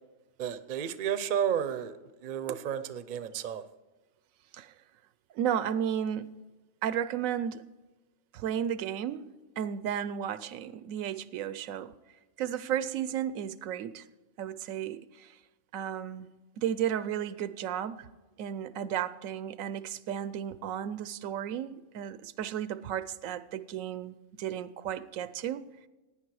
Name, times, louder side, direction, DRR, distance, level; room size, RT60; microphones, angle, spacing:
voice 1, 0.4-3.6, right 9 dB, 50° right, 13 dB, 0.6 m, -32 dB
voice 2, 5.3-6.4 6.8-7.6 8.3-11.9 12.4-14.1 14.4-15.4 15.7-16.3 16.6-18.1 18.4-25.7, right 9 dB, 80° right, 15 dB, 1.0 m, -34 dB
16.0 x 9.9 x 4.7 m, 1.2 s
omnidirectional pair, 1.4 m